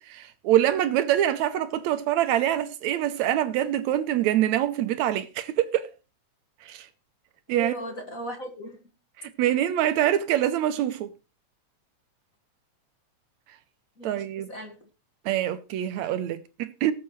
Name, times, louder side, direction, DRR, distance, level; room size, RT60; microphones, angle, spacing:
voice 1, 0.0-5.9 6.6-6.9 7.5-7.7 9.2-11.1 14.0-14.5 15.3-16.9, right 12 dB, 75° right, 2.0 m, -25 dB
voice 2, 7.5-8.8 14.0-14.9, right 1 dB, 35° left, 1.8 m, -37 dB
19.0 x 7.4 x 3.1 m
omnidirectional pair, 3.3 m